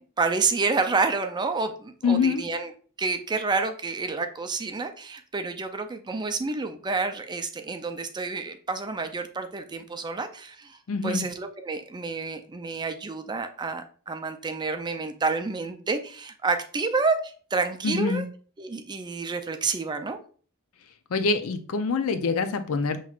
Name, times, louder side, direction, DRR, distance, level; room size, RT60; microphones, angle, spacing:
voice 1, 0.0-2.7 3.0-18.3 18.6-20.2, right 4 dB, 20° right, 7 dB, 0.4 m, -29 dB
voice 2, 2.0-2.4 10.9-11.3 17.8-18.3 21.1-23.0, left 4 dB, 80° left, 9 dB, 0.5 m, -25 dB
5.9 x 3.0 x 2.4 m, 0.42 s
head